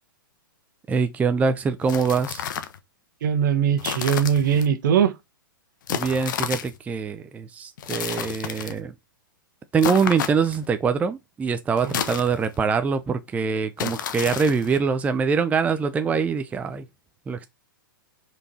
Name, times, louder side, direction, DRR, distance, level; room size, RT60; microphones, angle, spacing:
voice 1, 0.9-2.4 5.9-8.9 9.7-16.9 17.3-17.5, right 5 dB, 10° right, 0.6 m, -24 dB
sound 1, 1.8-2.8 3.8-4.7 5.9-6.8 7.8-8.8 9.8-10.7 11.8-12.6 13.8-14.8, left 9 dB, 60° left, 1.1 m, -31 dB
voice 2, 3.2-5.1 11.8-11.9, right 8 dB, 60° right, 1.2 m, -21 dB
5.2 x 4.6 x 4.2 m
hypercardioid pair, 120°, 12 cm